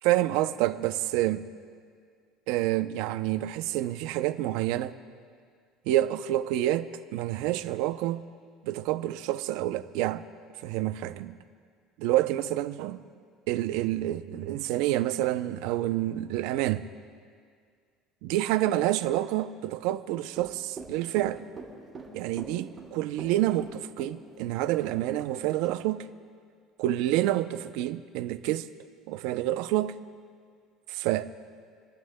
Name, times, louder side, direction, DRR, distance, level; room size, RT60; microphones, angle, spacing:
voice 1, 0.0-1.5 2.5-4.9 5.9-8.2 8.6-10.2 10.6-11.4 12.0-13.0 13.5-16.8 18.2-21.4 22.1-26.1 26.8-28.7 29.1-30.0 30.9-31.3, right 14 dB, 75° right, 0.5 m, -28 dB
Run / Walk footsteps, 20.3-25.4 25.6-25.8, right 4 dB, 25° right, 3.3 m, -43 dB
30.0 x 11.0 x 2.2 m
cardioid pair, 170°, 0 cm